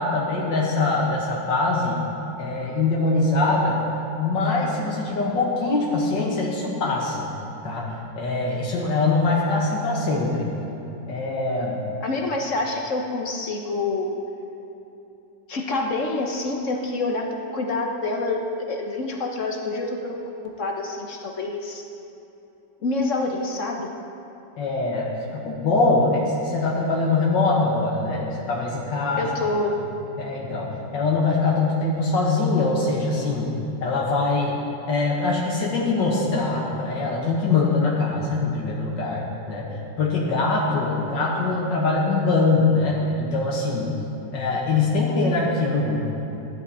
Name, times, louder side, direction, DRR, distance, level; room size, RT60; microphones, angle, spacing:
voice 1, 0.0-2.0 2.4-3.8 4.2-7.3 7.6-7.9 8.2-10.5 11.1-11.8 24.6-29.3 30.2-30.7 30.9-33.5 33.8-34.6 34.9-39.7 40.0-43.9 44.3-46.0, left 3 dB, 85° left, -4 dB, 2.2 m, -23 dB
voice 2, 12.0-14.1 15.5-17.3 17.5-21.9 22.8-23.9 29.2-29.7, left 2 dB, 50° left, 2 dB, 1.2 m, -27 dB
14.5 x 11.5 x 4.2 m, 3.0 s
omnidirectional pair, 1.9 m